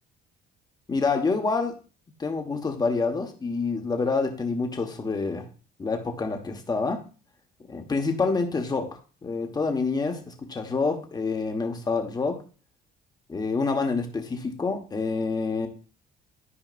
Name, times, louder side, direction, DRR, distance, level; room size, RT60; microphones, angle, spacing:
voice 1, 0.9-1.8 2.2-5.5 5.8-7.0 7.7-12.4 13.3-15.7, left 4 dB, 25° left, 5 dB, 1.3 m, -27 dB
12.5 x 5.0 x 2.5 m, 0.38 s
cardioid pair, 110°, 17 cm